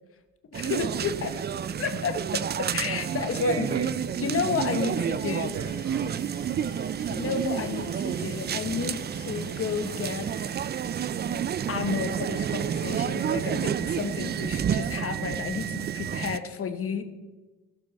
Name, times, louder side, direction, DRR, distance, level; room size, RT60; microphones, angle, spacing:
voice 1, 0.5-1.3 1.8-3.7 4.2-5.6 7.1-10.3 10.7-11.0 11.7-17.0, left 6 dB, 50° left, 8 dB, 1.2 m, -31 dB
sound 1, 0.5-16.4, right 8 dB, 35° right, 0.4 m, -30 dB
voice 2, 3.0-3.9 4.3-7.4, right 5 dB, 65° right, 5 dB, 1.3 m, -36 dB
Domestic sounds home sounds, 4.9-10.9, left 2 dB, 15° left, 3.7 m, -52 dB
15.5 x 6.7 x 4.1 m, 1.2 s
cardioid pair, 90°, 30 cm